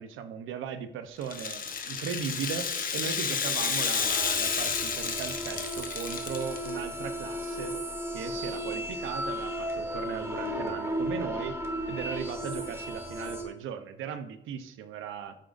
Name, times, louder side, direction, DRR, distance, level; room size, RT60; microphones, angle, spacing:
voice 1, 0.0-7.7 8.1-11.6 11.9-15.4, right 7 dB, 85° right, 9 dB, 0.7 m, -37 dB
Rattle (instrument), 1.2-6.7, left 6 dB, 45° left, 1.0 m, -31 dB
sound 1, 4.0-13.4, equal, 15° right, 1.7 m, -35 dB
13.0 x 5.1 x 2.5 m, 0.82 s
cardioid pair, 90°, 20 cm